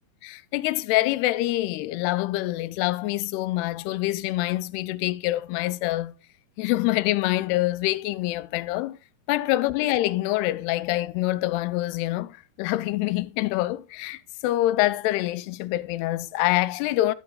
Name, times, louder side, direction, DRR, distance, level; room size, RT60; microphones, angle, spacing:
voice 1, 0.2-6.2 6.6-9.0 9.3-17.1, left 17 dB, 90° left, 2.6 m, -25 dB
12.0 x 6.9 x 3.8 m
omnidirectional pair, 4.6 m